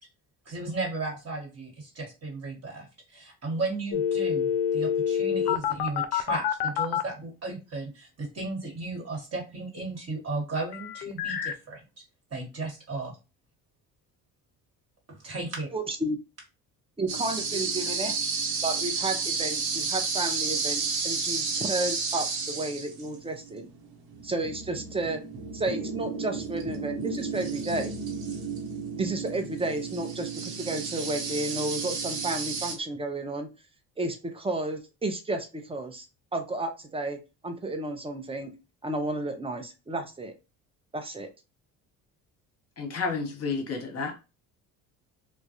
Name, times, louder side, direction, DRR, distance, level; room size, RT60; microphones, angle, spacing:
voice 1, 0.4-11.8 12.3-13.2 15.1-15.7, right 3 dB, 40° right, 1.2 m, -35 dB
sound 1, 3.9-7.0 10.7-11.5, left 9 dB, 70° left, 0.5 m, -27 dB
voice 2, 15.7-16.2 17.0-18.1 18.6-23.7 24.2-25.2 25.5-28.0 29.0-33.5 34.0-37.2 37.4-38.5 38.8-40.3 40.9-41.3, right 2 dB, 15° right, 0.5 m, -32 dB
sound 2, 17.1-32.8, right 5 dB, 60° right, 0.8 m, -32 dB
voice 3, 42.8-44.1, left 4 dB, 35° left, 1.0 m, -31 dB
2.2 x 2.1 x 2.8 m
supercardioid pair, 65°, 41 cm